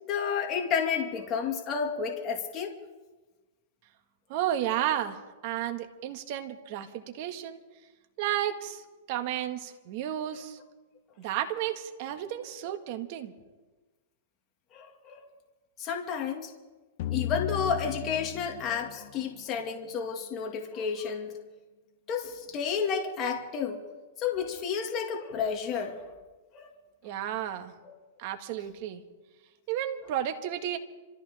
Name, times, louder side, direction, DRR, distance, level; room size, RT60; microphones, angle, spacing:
voice 1, 0.0-2.7 14.7-15.3 15.8-16.5 17.1-21.4 22.1-23.8 24.2-26.0 26.5-26.7 27.8-27.9, left 6 dB, 30° left, 1 dB, 2.1 m, -31 dB
voice 2, 4.3-7.6 8.2-8.8 9.1-10.6 11.2-13.3 27.0-27.7 28.2-29.0 29.7-30.8, right 11 dB, 50° right, 6 dB, 1.8 m, -32 dB
sound 1, 17.0-19.9, left 11 dB, 55° left, 0.6 m, -35 dB
27.0 x 14.5 x 3.6 m, 1.2 s
hypercardioid pair, 140°, 0 cm